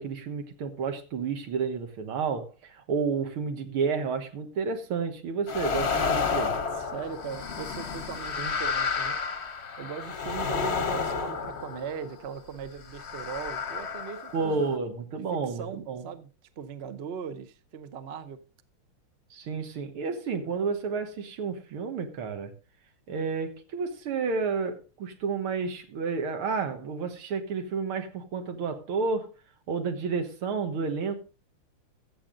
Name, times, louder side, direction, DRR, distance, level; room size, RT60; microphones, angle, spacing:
voice 1, 0.0-6.5 8.4-8.5 14.3-16.1 19.3-22.5 23.1-29.3 29.7-31.2, right 5 dB, 85° right, 2.3 m, -31 dB
sound 1, 5.5-12.2 12.9-14.8, left 5 dB, 45° left, 1.0 m, -31 dB
voice 2, 6.7-9.2 9.8-14.5 15.3-16.3 16.6-18.4, right 7 dB, 60° right, 0.6 m, -39 dB
14.0 x 7.6 x 3.8 m
omnidirectional pair, 2.3 m